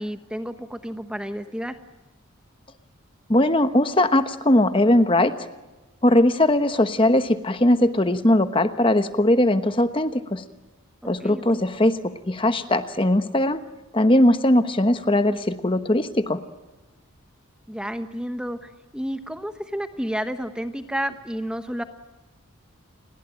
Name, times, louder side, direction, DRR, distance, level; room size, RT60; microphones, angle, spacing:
voice 1, 0.0-1.8 11.0-11.6 17.7-21.8, equal, 5° right, 8 dB, 1.0 m, -31 dB
voice 2, 3.3-5.5 6.0-10.4 11.0-13.6 13.9-16.4, left 1 dB, 25° left, 10 dB, 1.1 m, -20 dB
29.5 x 20.5 x 9.1 m, 1.1 s
head